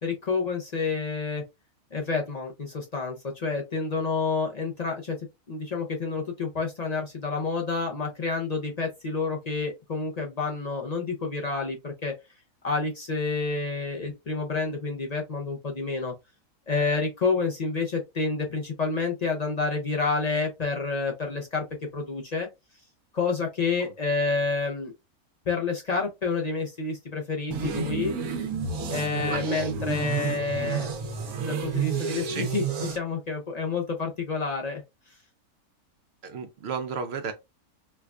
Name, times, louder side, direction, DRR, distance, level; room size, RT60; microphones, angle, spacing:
voice 1, 0.0-1.4 1.9-5.2 5.5-12.1 12.6-16.1 16.7-21.6 21.9-22.5 23.1-24.9 25.5-28.2 28.9-30.9 31.5-34.8, left 4 dB, 50° left, 0.5 m, -29 dB
sound 1, 27.5-33.0, right 5 dB, 80° right, 1.3 m, -30 dB
voice 2, 36.2-37.3, right 6 dB, 65° right, 0.7 m, -32 dB
4.5 x 2.3 x 2.4 m
omnidirectional pair, 1.5 m